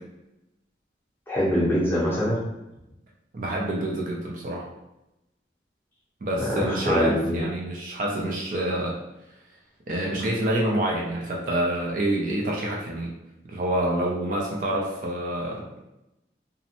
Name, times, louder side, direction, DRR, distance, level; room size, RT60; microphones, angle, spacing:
voice 1, 1.3-2.4 6.5-7.4, equal, 10° left, -7 dB, 0.7 m, -24 dB
voice 2, 3.3-4.7 6.2-9.0 9.9-13.1 13.5-15.8, right 1 dB, 45° right, -2 dB, 0.4 m, -27 dB
2.5 x 2.0 x 2.8 m, 0.90 s
head